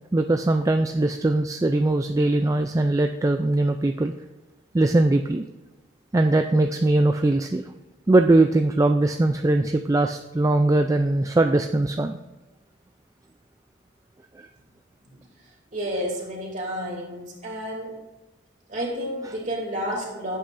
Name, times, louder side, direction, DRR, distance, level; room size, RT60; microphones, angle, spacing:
voice 1, 0.1-4.1 4.7-5.4 6.1-7.6 8.1-12.2 14.4-14.5, right 2 dB, 15° right, 6 dB, 0.3 m, -21 dB
voice 2, 15.7-18.0 18.7-20.4, equal, 40° right, -2 dB, 2.7 m, -30 dB
15.5 x 8.4 x 2.6 m, 1.1 s
head